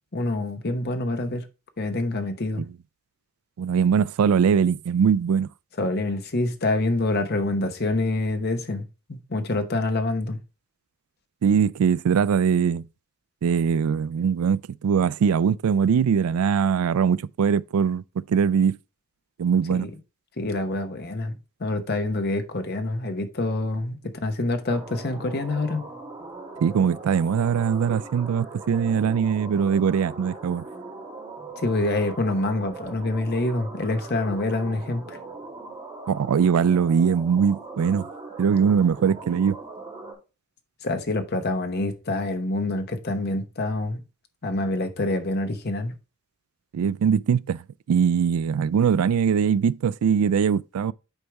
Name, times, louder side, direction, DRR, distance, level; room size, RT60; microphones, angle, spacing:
voice 1, 0.1-1.4 1.8-2.6 5.8-10.4 19.7-19.9 20.4-21.3 21.6-24.0 24.2-25.9 31.6-35.2 40.8-44.0 44.4-45.9, left 2 dB, 45° left, 0.9 m, -26 dB
voice 2, 3.6-5.5 11.4-12.8 13.4-18.8 19.4-19.9 26.6-30.6 36.1-38.1 38.4-39.6 46.7-47.6 47.9-50.9, right 7 dB, 80° right, 0.3 m, -21 dB
sound 1, 24.7-40.1, right 3 dB, 20° right, 3.2 m, -40 dB
8.1 x 4.7 x 3.4 m
head